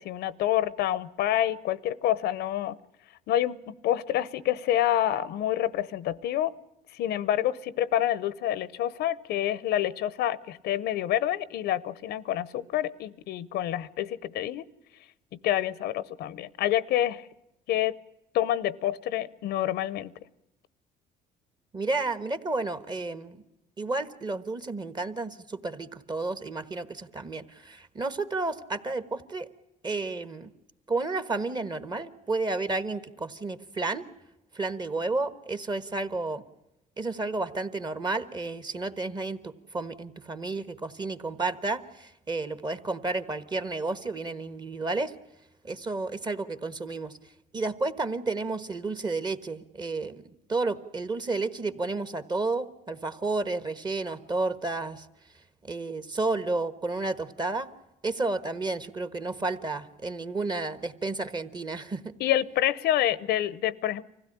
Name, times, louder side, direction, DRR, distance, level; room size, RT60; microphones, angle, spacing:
voice 1, 0.0-2.8 3.3-6.5 6.9-14.6 15.4-17.3 17.7-17.9 18.3-20.1 62.2-64.0, left 12 dB, 75° left, 19 dB, 0.8 m, -27 dB
voice 2, 21.7-23.4 23.8-29.5 29.8-30.5 30.9-34.0 34.5-36.4 37.0-45.1 45.6-47.2 47.5-55.1 55.7-57.7 58.0-62.1, right 3 dB, 25° right, 12 dB, 1.3 m, -31 dB
25.0 x 16.0 x 9.9 m, 0.91 s
cardioid pair, 110°, 17 cm